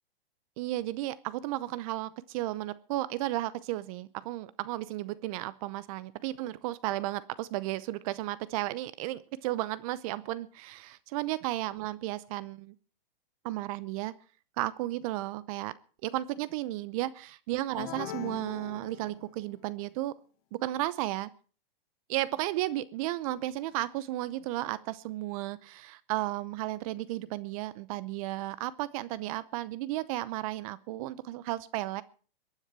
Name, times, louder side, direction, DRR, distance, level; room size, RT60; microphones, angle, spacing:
voice 1, 0.6-12.7 13.4-14.1 14.6-15.7 16.0-20.1 20.5-21.3 22.1-32.0, right 16 dB, 40° right, 17 dB, 0.7 m, -34 dB
sound 1, 17.7-19.6, left 11 dB, 40° left, 1.7 m, -41 dB
22.5 x 9.9 x 4.7 m, 0.40 s
hypercardioid pair, 135°, 29 cm